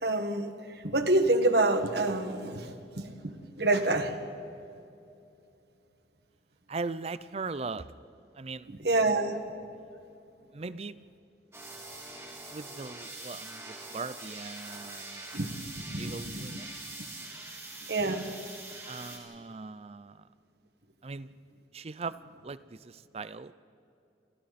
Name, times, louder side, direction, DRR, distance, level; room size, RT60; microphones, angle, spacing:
voice 1, 0.0-0.5 0.8-4.1 8.8-9.4 15.3-15.5 15.7-16.6 17.9-18.2, right 2 dB, 65° right, 7 dB, 1.7 m, -27 dB
voice 2, 6.7-7.9 8.3-8.7 10.5-11.0 12.5-15.4 16.0-16.7 18.9-20.2 21.0-21.3 21.7-22.1 22.4-23.5, right 4 dB, 35° right, 15 dB, 0.5 m, -39 dB
sound 1, 11.5-19.2, right 2 dB, 15° right, 3.3 m, -43 dB
29.0 x 28.0 x 4.2 m, 2.6 s
head